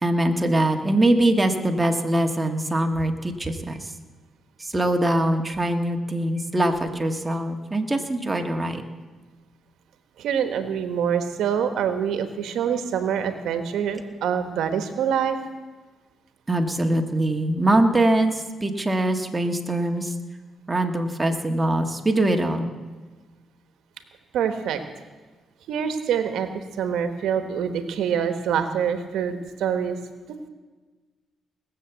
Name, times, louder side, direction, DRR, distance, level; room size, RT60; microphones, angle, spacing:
voice 1, 0.0-3.8 4.6-8.8 16.5-20.1 20.7-22.7, right 1 dB, 15° right, 3 dB, 1.5 m, -23 dB
voice 2, 10.2-15.4 24.3-24.8 25.7-26.5 26.8-30.0 30.3-30.5, right 8 dB, 85° right, 8 dB, 1.1 m, -25 dB
19.5 x 7.1 x 8.1 m, 1.3 s
cardioid pair, 90°, 0 cm